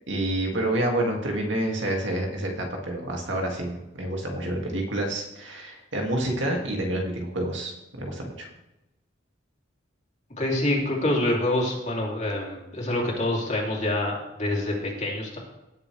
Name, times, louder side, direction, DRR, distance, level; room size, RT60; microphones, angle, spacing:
voice 1, 0.1-8.5, right 1 dB, 70° right, 1 dB, 2.3 m, -28 dB
voice 2, 10.4-15.4, left 1 dB, 40° left, -2 dB, 3.1 m, -26 dB
18.0 x 7.0 x 3.4 m, 0.95 s
head